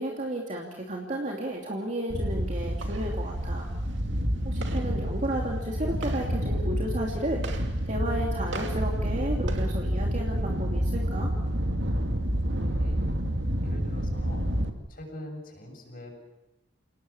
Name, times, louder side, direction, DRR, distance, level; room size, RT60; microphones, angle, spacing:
voice 1, 0.0-3.7 4.4-11.3, right 1 dB, 45° right, -1 dB, 2.7 m, -33 dB
sound 1, 2.1-14.7, equal, 85° right, 2.5 m, -28 dB
voice 2, 12.5-13.1 13.6-14.5 14.9-16.2, left 1 dB, 50° left, 1 dB, 7.6 m, -43 dB
29.5 x 19.0 x 7.2 m, 0.93 s
head